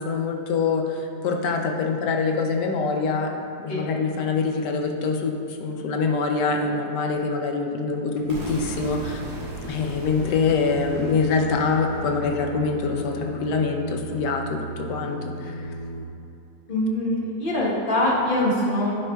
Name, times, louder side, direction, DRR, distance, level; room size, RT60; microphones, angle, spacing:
voice 1, 0.0-3.3 3.6-9.3 9.6-15.7, left 4 dB, 85° left, 3 dB, 1.3 m, -25 dB
Singing, 8.2-16.1, right 1 dB, 65° left, 1.0 m, -36 dB
sound 1, 8.3-14.2, right 2 dB, 70° right, 1.4 m, -40 dB
voice 2, 16.7-19.0, left 1 dB, 35° left, -5 dB, 1.0 m, -23 dB
9.7 x 5.3 x 2.3 m, 2.6 s
omnidirectional pair, 1.8 m